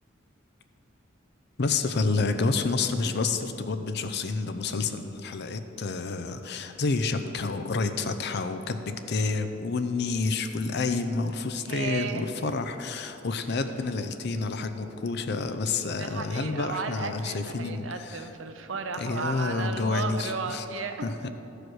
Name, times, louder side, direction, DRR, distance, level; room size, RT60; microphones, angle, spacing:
voice 1, 1.6-8.8 9.1-18.2 19.0-20.6 21.0-21.3, left 3 dB, 60° left, 8 dB, 0.6 m, -29 dB
voice 2, 11.6-12.3 15.8-21.1, right 4 dB, 70° right, 7 dB, 0.7 m, -34 dB
13.5 x 4.9 x 6.2 m, 3.0 s
head